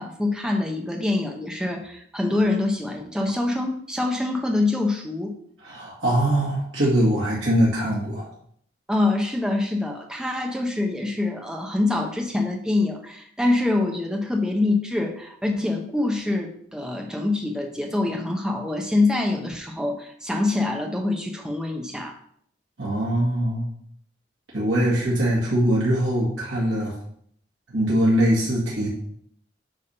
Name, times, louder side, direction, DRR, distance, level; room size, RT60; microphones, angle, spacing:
voice 1, 0.0-5.4 8.9-22.1, left 2 dB, 5° right, 2 dB, 0.8 m, -25 dB
voice 2, 5.6-8.2 22.8-23.7 24.5-26.9 27.7-28.9, right 1 dB, 85° right, -6 dB, 2.1 m, -22 dB
8.5 x 3.6 x 5.5 m, 0.64 s
head